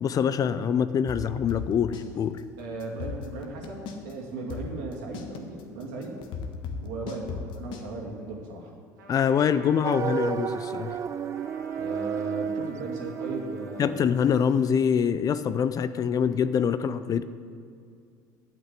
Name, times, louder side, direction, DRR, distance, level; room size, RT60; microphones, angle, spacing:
voice 1, 0.0-2.4 9.1-11.0 13.8-17.2, left 7 dB, 40° left, 13 dB, 0.5 m, -25 dB
sound 1, 1.1-2.1 2.4-2.5 2.8-4.1 4.5-7.9, left 5 dB, 60° left, 1.3 m, -36 dB
voice 2, 2.6-6.2 6.8-8.7 11.8-14.1, right 3 dB, 70° right, -1 dB, 2.3 m, -37 dB
Trumpet, 9.0-13.9, right 2 dB, 90° right, 1.5 m, -49 dB
sound 2, 9.8-14.7, right 7 dB, 30° right, 0.4 m, -32 dB
9.1 x 8.2 x 7.6 m, 2.2 s
hypercardioid pair, 70°, 10 cm